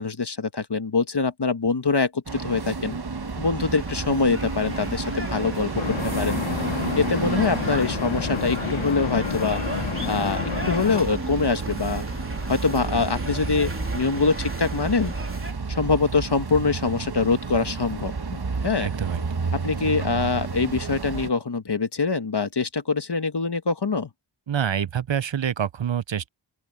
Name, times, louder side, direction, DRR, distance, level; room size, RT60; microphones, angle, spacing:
voice 1, 0.0-3.0 3.4-5.7 6.0-6.4 7.0-9.6 10.0-10.4 10.6-12.0 12.5-15.1 15.7-18.1 18.6-18.9 19.6-24.1, left 4 dB, 55° left, 1.3 m, -24 dB
sound 1, 2.3-21.3, right 4 dB, 50° right, 1.2 m, -31 dB
sound 2, 3.6-15.5, right 1 dB, 25° right, 3.1 m, -35 dB
sound 3, 5.7-11.0, left 7 dB, 70° left, 0.8 m, -30 dB
voice 2, 18.8-19.4 24.5-26.3, right 8 dB, 65° right, 0.7 m, -27 dB
open air
wide cardioid pair, 40°, 49 cm